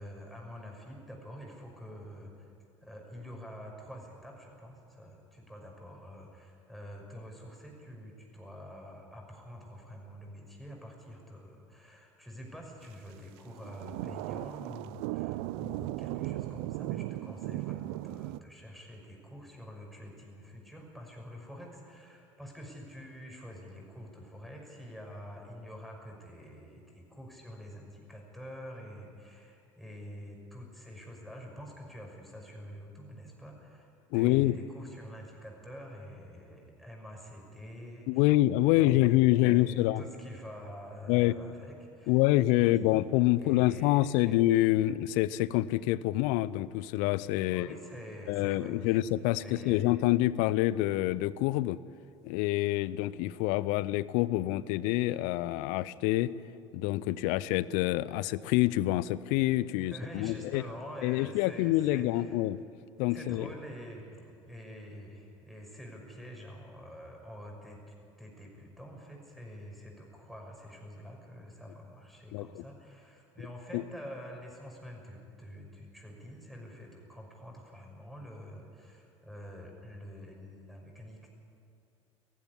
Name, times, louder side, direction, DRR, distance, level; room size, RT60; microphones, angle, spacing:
voice 1, 0.0-2.5 2.8-38.3 38.6-42.2 42.5-42.9 43.3-44.4 47.5-49.0 49.3-49.8 59.8-62.4 63.1-67.8 68.2-81.3, equal, ahead, -1 dB, 6.1 m, -47 dB
sound 1, 13.5-18.4, right 18 dB, 60° right, 0.5 m, -37 dB
voice 2, 34.1-34.6 38.1-40.0 41.1-41.3 42.1-47.7 48.3-51.8 52.2-56.3 56.7-60.6 61.0-62.6 63.0-63.5 72.3-72.6 73.7-73.8, left 16 dB, 60° left, 19 dB, 0.6 m, -26 dB
18.5 x 15.0 x 9.9 m, 2.6 s
figure-of-eight pair, 70°, 16 cm